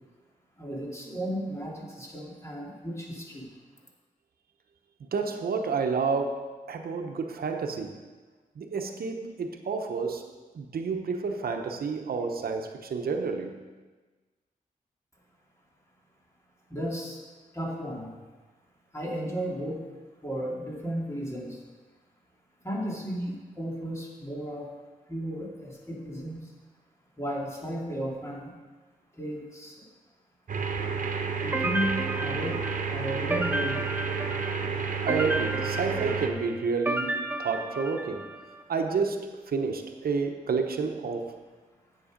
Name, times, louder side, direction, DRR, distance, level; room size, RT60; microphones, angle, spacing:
voice 1, 0.6-3.5 16.7-17.2 17.5-18.1 18.9-19.8 20.2-21.6 22.6-24.7 25.1-26.4 27.2-28.5 29.2-29.7 31.4-32.6 32.9-34.0, equal, 20° left, -2 dB, 2.6 m, -34 dB
voice 2, 5.0-8.0 8.6-10.3 10.5-13.6 35.0-38.3 38.7-41.3, right 5 dB, 85° right, 5 dB, 0.9 m, -30 dB
sound 1, 30.5-36.3, right 5 dB, 60° right, 1.1 m, -31 dB
sound 2, 31.5-38.5, right 1 dB, 15° right, 0.9 m, -33 dB
9.9 x 8.2 x 5.2 m, 1.3 s
wide cardioid pair, 80°, 15 cm